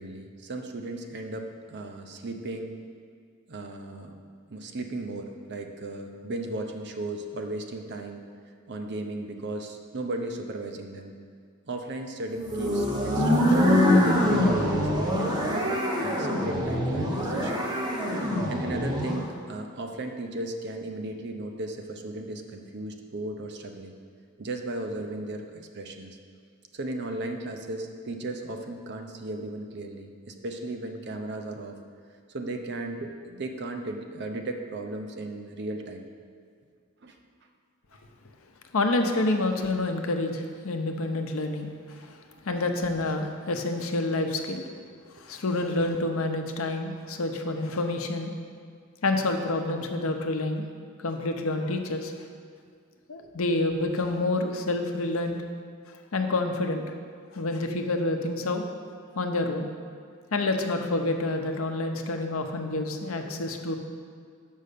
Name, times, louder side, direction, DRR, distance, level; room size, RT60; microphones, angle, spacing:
voice 1, 0.0-2.7 3.5-4.1 4.5-8.2 8.7-11.1 11.7-17.6 18.5-23.9 24.4-26.2 26.7-31.8 32.3-36.0 37.0-37.1 45.2-45.3 53.2-53.3 63.2-63.3, right 2 dB, 55° right, 4 dB, 0.7 m, -36 dB
sound 1, 12.4-19.3, left 1 dB, 20° right, 1.1 m, -24 dB
voice 2, 38.7-42.2 42.4-44.6 45.2-48.3 49.0-50.7 51.0-52.1 53.1-55.4 56.1-56.8 57.3-58.6 59.1-59.7 60.3-63.8, left 2 dB, 75° left, 4 dB, 0.7 m, -28 dB
6.6 x 5.5 x 6.7 m, 2.1 s
head